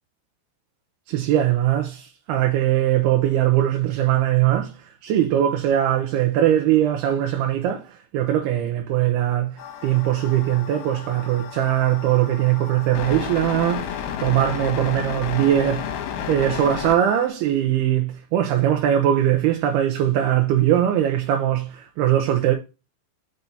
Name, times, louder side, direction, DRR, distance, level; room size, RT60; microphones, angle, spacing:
voice 1, 1.1-22.5, right 11 dB, 75° right, 2.4 m, -21 dB
sound 1, 9.6-17.3, left 8 dB, 70° left, 2.4 m, -32 dB
6.2 x 5.4 x 4.1 m
omnidirectional pair, 5.4 m